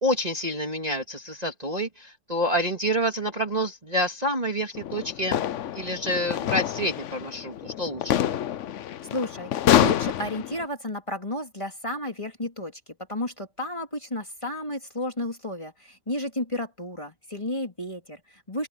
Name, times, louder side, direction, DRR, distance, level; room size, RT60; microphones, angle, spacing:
voice 1, 0.0-5.4 5.7-8.2, equal, 20° right, 2.5 m, -28 dB
sound 1, 4.7-10.6, left 11 dB, 65° left, 0.8 m, -27 dB
voice 2, 9.1-9.5 9.8-12.8 13.1-18.7, left 1 dB, 15° left, 3.4 m, -32 dB
open air
omnidirectional pair, 1.9 m